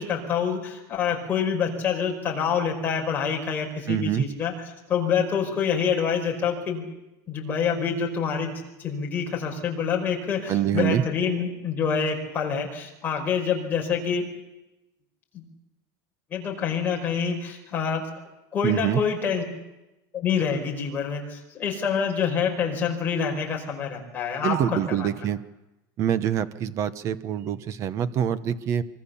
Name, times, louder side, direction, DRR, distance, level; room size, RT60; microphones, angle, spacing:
voice 1, 0.0-4.5 4.9-6.8 7.3-8.5 8.8-14.2 15.3-15.4 16.3-18.0 18.5-19.4 20.1-25.1, left 6 dB, 20° left, -1 dB, 5.1 m, -26 dB
voice 2, 3.9-4.2 10.5-11.0 18.6-19.0 24.4-25.4 26.0-28.8, right 9 dB, 30° right, 14 dB, 1.0 m, -25 dB
25.0 x 24.5 x 7.1 m, 0.96 s
cardioid pair, 180°, 10 cm